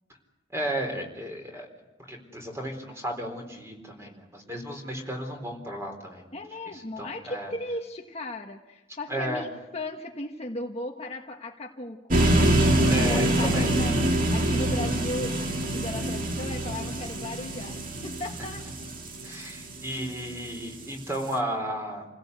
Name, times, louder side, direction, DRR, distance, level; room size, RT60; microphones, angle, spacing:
voice 1, 0.5-1.7 2.1-6.4 6.7-7.5 9.1-9.4 12.9-13.7 19.2-22.1, equal, 15° right, 2 dB, 4.1 m, -34 dB
voice 2, 6.3-12.2 13.0-14.0 14.3-18.6, left 1 dB, 35° left, 2 dB, 1.4 m, -36 dB
sound 1, 12.1-20.2, right 1 dB, 45° right, 2.2 m, -25 dB
28.5 x 17.0 x 8.2 m, 1.1 s
head